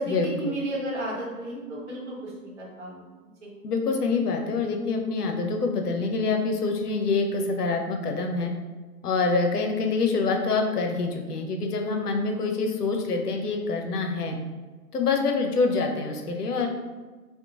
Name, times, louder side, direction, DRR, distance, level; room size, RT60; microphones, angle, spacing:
voice 1, 0.0-3.0 3.4-3.5, right 1 dB, 45° right, -5 dB, 1.1 m, -33 dB
voice 2, 3.6-8.5 9.0-14.4 14.9-16.7, left 4 dB, 70° left, 3 dB, 0.6 m, -26 dB
2.9 x 2.2 x 2.4 m, 1.3 s
figure-of-eight pair, 135°, 48 cm